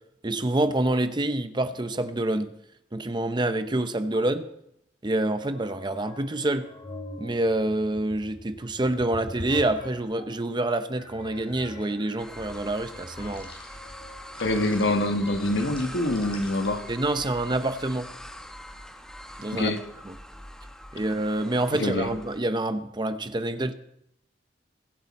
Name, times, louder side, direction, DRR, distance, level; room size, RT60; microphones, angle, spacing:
voice 1, 0.2-2.5 2.9-4.5 5.0-6.7 7.2-13.5 16.9-18.1 19.4-19.7 20.9-23.7, right 1 dB, 25° right, 0.7 m, -27 dB
sound 1, 5.4-10.4 10.9-17.6, left 1 dB, 30° left, 3.3 m, -44 dB
sound 2, 12.2-22.4, equal, 5° left, 1.0 m, -43 dB
voice 2, 14.4-16.9 19.5-19.8 21.8-22.1, left 1 dB, 80° left, 1.4 m, -25 dB
22.5 x 8.5 x 4.2 m
head